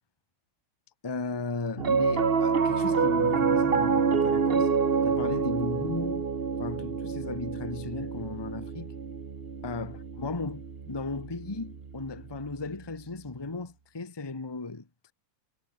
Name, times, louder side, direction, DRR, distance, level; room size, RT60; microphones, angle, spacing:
voice 1, 1.0-4.7 5.0-6.2 6.6-8.9 9.6-15.1, left 3 dB, 20° left, 0.7 m, -36 dB
Piano, 1.8-12.3, right 5 dB, 90° right, 0.5 m, -27 dB
omnidirectional pair, 3.3 m